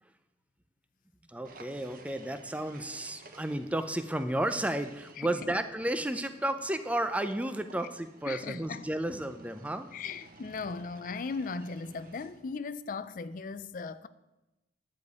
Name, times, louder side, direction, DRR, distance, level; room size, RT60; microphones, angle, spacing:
voice 1, 1.3-9.9, right 1 dB, 10° right, 0.5 m, -32 dB
sound 1, 1.4-5.2 6.2-12.5, right 2 dB, 50° right, 1.0 m, -54 dB
voice 2, 5.2-5.6 8.3-8.9 9.9-14.1, left 4 dB, 45° left, 0.4 m, -38 dB
10.5 x 5.1 x 8.1 m
head